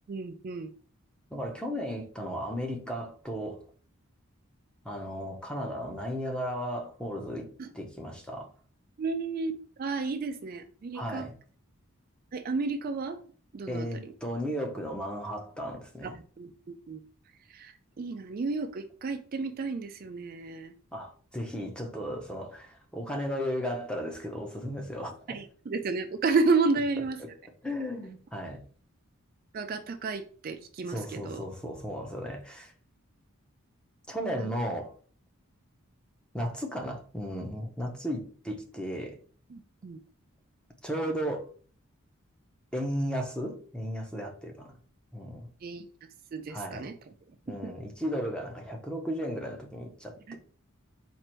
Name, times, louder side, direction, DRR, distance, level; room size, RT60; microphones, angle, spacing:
voice 1, 0.1-0.7 7.6-7.7 9.0-9.5 9.8-11.3 12.3-13.2 13.5-14.1 16.0-17.0 17.3-20.7 25.3-27.2 29.5-31.5 34.3-34.5 39.5-40.0 45.6-46.9 47.5-47.7 50.3-50.4, right 4 dB, 40° right, 0.3 m, -32 dB
voice 2, 1.3-3.6 4.8-7.5 7.7-8.5 10.9-11.4 13.7-16.1 20.9-25.4 27.2-27.3 27.6-28.6 30.9-32.7 34.1-34.9 36.3-39.2 40.8-41.5 42.7-44.7 45.1-45.5 46.5-46.9 47.5-50.4, equal, 5° left, 0.7 m, -35 dB
4.4 x 2.5 x 4.4 m
head